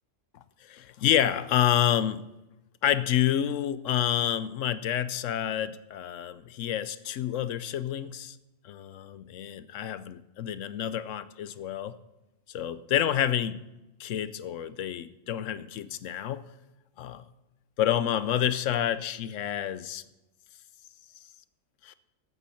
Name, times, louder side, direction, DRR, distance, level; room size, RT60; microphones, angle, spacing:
voice 1, 0.6-2.2 2.8-8.4 8.6-12.0 12.5-13.6 14.0-16.4 17.0-17.2 17.8-20.0 21.8-21.9, left 10 dB, 75° left, 1.0 m, -28 dB
13.5 x 8.4 x 5.7 m
omnidirectional pair, 1.3 m